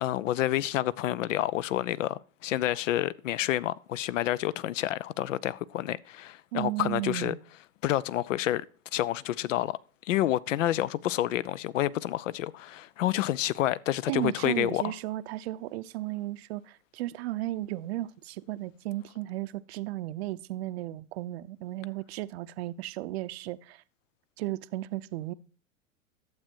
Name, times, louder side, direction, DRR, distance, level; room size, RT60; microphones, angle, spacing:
voice 1, 0.0-7.3 7.8-8.6 8.9-9.8 10.0-14.8, left 13 dB, 65° left, 0.6 m, -29 dB
voice 2, 6.5-7.4 14.1-23.8 24.4-25.3, right 16 dB, 50° right, 0.6 m, -34 dB
12.0 x 7.8 x 4.4 m
hypercardioid pair, 105°, 41 cm